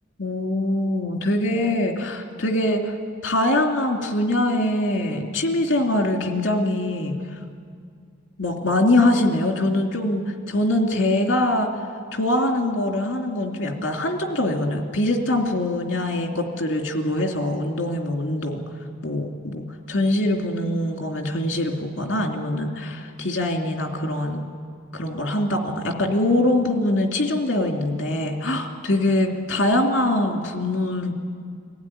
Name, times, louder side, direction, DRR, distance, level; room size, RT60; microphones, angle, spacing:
voice 1, 0.2-2.9 3.2-7.2 8.4-11.7 12.1-18.6 19.0-24.4 24.9-31.1, left 1 dB, 60° left, 2 dB, 2.7 m, -23 dB
23.5 x 15.5 x 9.8 m, 2.2 s
head